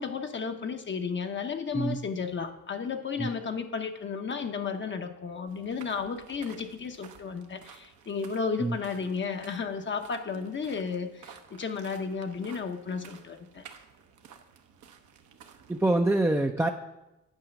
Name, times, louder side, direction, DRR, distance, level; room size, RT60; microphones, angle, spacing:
voice 1, 0.0-13.6, left 5 dB, 40° left, 5 dB, 0.8 m, -33 dB
sound 1, 5.5-16.0, right 7 dB, 70° right, 1.0 m, -53 dB
voice 2, 15.7-16.7, right 2 dB, 10° right, 3 dB, 0.5 m, -25 dB
9.0 x 4.9 x 6.9 m, 0.94 s
cardioid pair, 90°, 30 cm